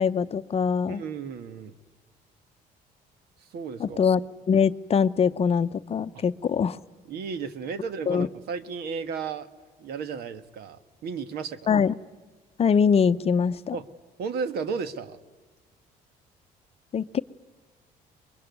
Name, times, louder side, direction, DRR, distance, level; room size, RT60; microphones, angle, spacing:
voice 1, 0.0-1.0 3.8-4.2 4.5-6.8 8.1-8.3 11.7-11.9 12.6-13.8 16.9-17.2, left 6 dB, 35° left, 12 dB, 0.7 m, -23 dB
voice 2, 0.9-1.7 3.5-4.0 6.1-6.2 7.1-9.5 9.8-11.7 13.7-13.9 14.2-15.2, right 5 dB, 70° right, 12 dB, 1.6 m, -34 dB
23.5 x 22.0 x 9.5 m, 1.3 s
cardioid pair, 110°, 17 cm